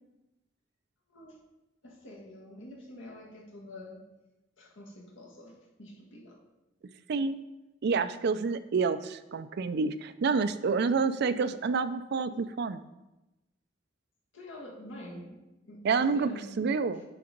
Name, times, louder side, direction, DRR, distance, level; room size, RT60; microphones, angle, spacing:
voice 1, 1.8-4.0 4.6-6.4 14.3-16.6 16.9-17.0, left 1 dB, 80° left, -1 dB, 1.6 m, -47 dB
voice 2, 7.1-7.4 7.8-12.8 15.8-16.3 16.6-17.0, right 5 dB, 55° right, 12 dB, 0.4 m, -28 dB
9.3 x 3.9 x 5.2 m, 1.0 s
head